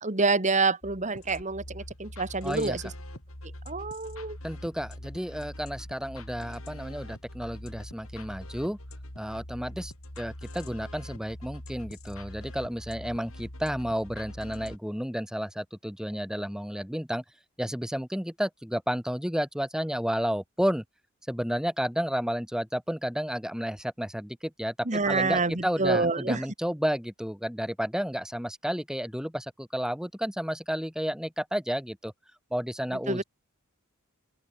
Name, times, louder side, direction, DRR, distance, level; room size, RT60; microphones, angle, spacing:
voice 1, 0.0-2.8 3.7-4.4 24.9-26.4 33.1-33.2, right 3 dB, 35° right, 1.9 m, -27 dB
sound 1, 0.8-14.8, left 1 dB, 85° left, 6.0 m, -43 dB
voice 2, 2.4-2.8 4.4-8.8 9.2-17.2 17.6-20.8 21.3-32.1 32.5-33.2, equal, 5° right, 6.9 m, -31 dB
open air
head